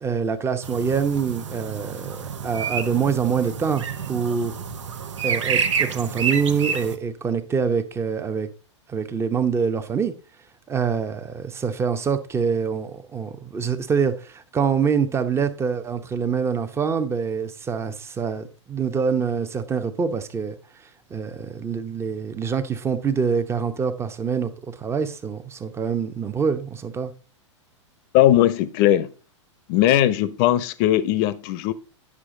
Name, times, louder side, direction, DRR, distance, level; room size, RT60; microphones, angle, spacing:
voice 1, 0.0-4.6 5.2-8.5 8.9-10.1 10.7-20.6 21.1-27.1, right 6 dB, 15° right, 0.9 m, -25 dB
sound 1, 0.6-7.0, right 6 dB, 70° right, 1.1 m, -29 dB
voice 2, 28.1-29.1 29.7-31.7, left 13 dB, 45° left, 0.8 m, -19 dB
9.9 x 6.3 x 3.8 m
hypercardioid pair, 105°, 16 cm